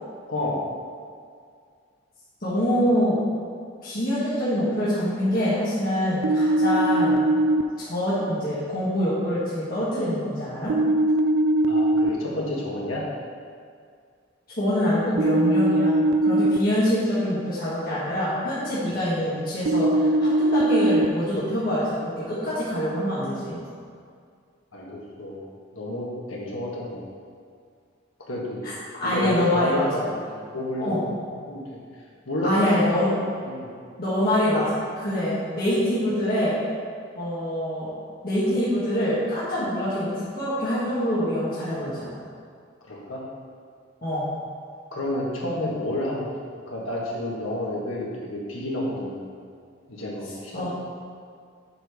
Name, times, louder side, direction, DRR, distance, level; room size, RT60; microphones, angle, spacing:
voice 1, 0.3-0.6 11.7-13.0 24.7-25.4 25.7-27.0 28.3-28.6 29.0-30.9 31.3-31.8 32.2-32.9 33.4-33.7 42.9-43.2 44.9-46.3 46.7-49.3 49.9-50.7, left 1 dB, 90° left, -4 dB, 1.5 m, -30 dB
voice 2, 2.4-3.2 3.8-7.2 7.8-10.7 14.6-21.9 22.2-23.6 28.6-28.7 29.0-30.1 30.8-31.0 32.4-33.1 34.0-36.5 37.1-37.9 38.2-42.1 44.0-44.3 50.5-50.7, equal, 45° left, -12 dB, 1.7 m, -25 dB
sound 1, 6.2-7.6 10.7-12.1 15.2-16.6 19.7-21.0, right 1 dB, 75° right, 0.4 m, -20 dB
7.8 x 4.2 x 4.9 m, 2.2 s
head